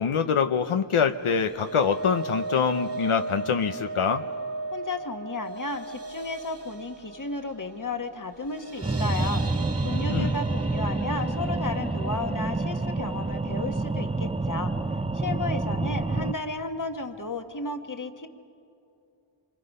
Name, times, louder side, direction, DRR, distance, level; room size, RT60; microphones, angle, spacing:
voice 1, 0.0-4.2 10.1-10.3, left 6 dB, 85° left, 7 dB, 0.8 m, -25 dB
sound 1, 1.1-15.3 15.6-15.9 16.2-16.3, right 3 dB, 55° right, 1.6 m, -38 dB
voice 2, 4.7-9.4 9.8-14.7 15.1-18.3, left 3 dB, 40° left, 6 dB, 1.5 m, -33 dB
sound 2, 8.8-16.3, right 2 dB, 15° right, 0.5 m, -28 dB
26.5 x 24.5 x 5.4 m, 2.7 s
wide cardioid pair, 60°, 49 cm